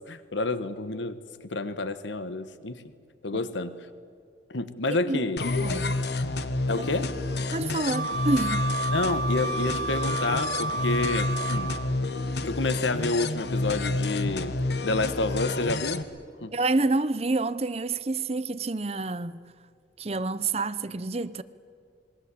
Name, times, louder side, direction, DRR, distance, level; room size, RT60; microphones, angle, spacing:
voice 1, 0.1-2.8 3.2-3.9 4.5-5.5 6.7-7.1 8.9-11.7 12.4-14.5 14.8-16.0 16.4-16.5, left 2 dB, 85° left, 1.2 m, -29 dB
sound 1, 5.4-16.0, left 2 dB, 65° left, 1.3 m, -29 dB
voice 2, 5.6-6.0 6.8-6.9 7.5-8.7 16.5-19.4 20.0-21.4, right 3 dB, 35° right, 0.6 m, -28 dB
Wind instrument woodwind instrument, 7.9-12.0, right 3 dB, 65° right, 0.7 m, -31 dB
27.5 x 21.5 x 8.4 m
head